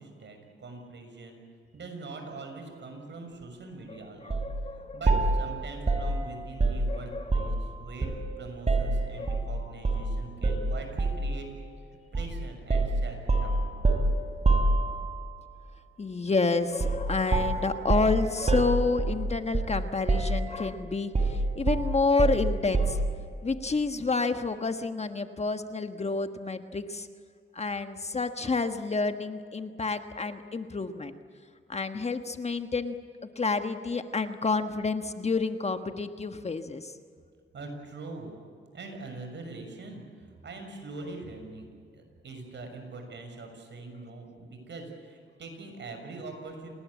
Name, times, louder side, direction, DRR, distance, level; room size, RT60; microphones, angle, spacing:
voice 1, 0.0-1.4 1.7-4.4 4.7-11.5 12.1-13.6 37.5-38.4 38.7-46.7, right 3 dB, 60° right, 4 dB, 6.5 m, -43 dB
voice 2, 3.9-5.1 6.9-7.7 9.2-9.5 16.0-23.1 23.4-27.1 27.5-31.1 31.7-33.0 33.3-36.9, left 3 dB, 30° left, 8 dB, 1.4 m, -29 dB
sound 1, 4.3-4.5 5.1-7.7 8.0-9.5 9.8-10.1 10.4-11.3 12.1-12.3 12.7-15.3 16.8-17.1 17.3-19.8 20.1-20.7 21.1-23.1, right 2 dB, 30° right, 4.0 m, -26 dB
27.5 x 20.0 x 8.6 m, 2.2 s
cardioid pair, 100°, 21 cm